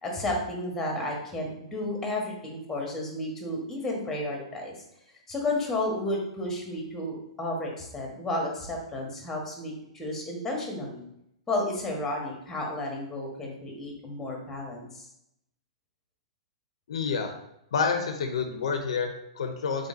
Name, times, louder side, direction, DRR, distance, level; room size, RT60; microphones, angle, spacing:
voice 1, 0.0-4.8 5.3-11.0 11.5-15.1, left 1 dB, 10° left, 0 dB, 1.1 m, -32 dB
voice 2, 16.9-17.3 17.7-19.9, left 5 dB, 70° left, 6 dB, 0.5 m, -28 dB
3.7 x 3.6 x 2.6 m, 0.78 s
hypercardioid pair, 120°, 3 cm